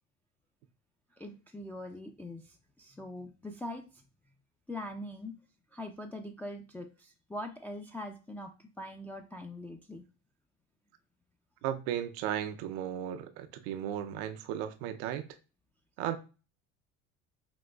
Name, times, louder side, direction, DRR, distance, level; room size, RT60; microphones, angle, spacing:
voice 1, 1.1-4.0 4.7-5.3 5.7-10.0, left 1 dB, 5° left, 0.4 m, -42 dB
voice 2, 11.6-15.2 16.0-16.2, right 10 dB, 80° right, 0.6 m, -35 dB
5.1 x 2.9 x 2.2 m
supercardioid pair, 80°, 34 cm